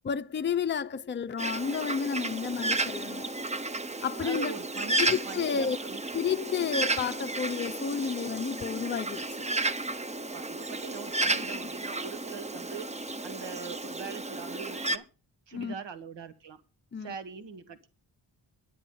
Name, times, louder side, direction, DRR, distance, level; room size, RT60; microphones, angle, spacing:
voice 1, 0.0-3.3 4.0-4.5 5.0-5.8 6.1-9.5 15.5-15.7 16.9-17.1, left 6 dB, 25° left, 0.5 m, -31 dB
Bird, 1.4-15.0, right 2 dB, 15° right, 0.6 m, -33 dB
voice 2, 4.2-6.0 10.3-12.9 13.2-15.0 15.5-16.6 17.0-17.9, right 6 dB, 80° right, 1.6 m, -42 dB
10.5 x 9.3 x 5.5 m
wide cardioid pair, 135°, 42 cm